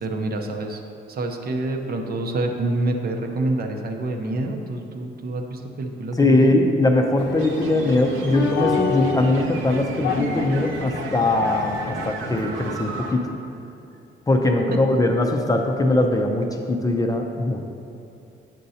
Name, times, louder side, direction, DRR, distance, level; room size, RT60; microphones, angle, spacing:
voice 1, 0.0-0.8 1.1-6.6 14.7-14.8, right 2 dB, 50° right, 3 dB, 0.7 m, -27 dB
voice 2, 6.2-13.3 14.3-17.6, left 2 dB, 20° left, 2 dB, 0.5 m, -21 dB
sound 1, 7.2-12.8, left 4 dB, 60° left, 0.7 m, -29 dB
sound 2, 7.4-13.1, right 3 dB, 90° right, 0.6 m, -36 dB
9.0 x 5.3 x 2.8 m, 2.7 s
cardioid pair, 90°, 20 cm